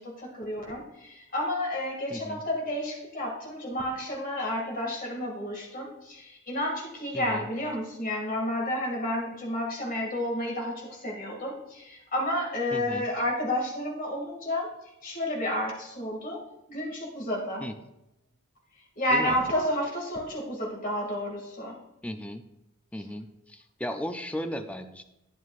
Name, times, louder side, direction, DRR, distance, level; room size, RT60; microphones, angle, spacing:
voice 1, 0.0-14.7 15.0-16.4 16.7-17.7 19.0-21.8, left 1 dB, 40° left, -2 dB, 2.2 m, -31 dB
voice 2, 2.1-2.4 7.1-7.5 12.7-13.1 17.6-17.7 19.1-19.4 22.0-22.5 22.9-25.0, equal, 5° left, 7 dB, 0.4 m, -36 dB
11.0 x 9.4 x 2.5 m, 0.89 s
head